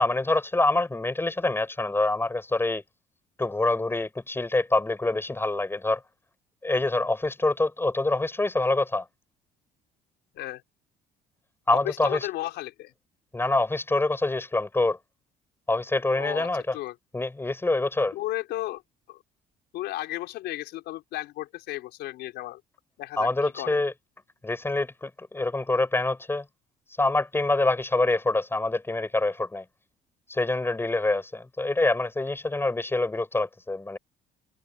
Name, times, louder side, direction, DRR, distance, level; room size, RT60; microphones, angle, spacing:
voice 1, 0.0-2.8 3.4-6.0 6.6-9.1 11.7-12.3 13.3-15.0 15.7-16.8 17.1-18.2 23.2-23.9 24.4-26.5 27.0-29.6 30.3-34.0, left 2 dB, 15° left, 7.1 m, -25 dB
voice 2, 11.7-12.9 16.1-17.0 18.1-18.8 19.1-19.2 19.7-22.6 23.0-23.8, left 16 dB, 85° left, 5.4 m, -34 dB
cardioid pair, 110°, 17 cm